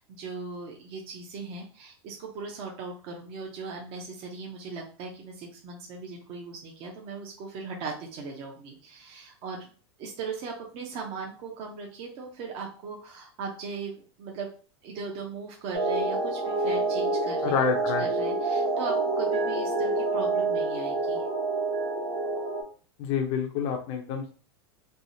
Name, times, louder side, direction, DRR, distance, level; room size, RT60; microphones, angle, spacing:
voice 1, 0.0-9.7 10.0-14.5 14.8-17.7 18.0-21.2, right 4 dB, 40° right, 0 dB, 0.7 m, -38 dB
sound 1, 15.7-22.6, right 3 dB, 90° right, 1.0 m, -27 dB
voice 2, 17.4-18.1 23.0-24.3, left 6 dB, 45° left, 3 dB, 0.6 m, -28 dB
3.4 x 2.0 x 2.7 m, 0.39 s
hypercardioid pair, 125°, 15 cm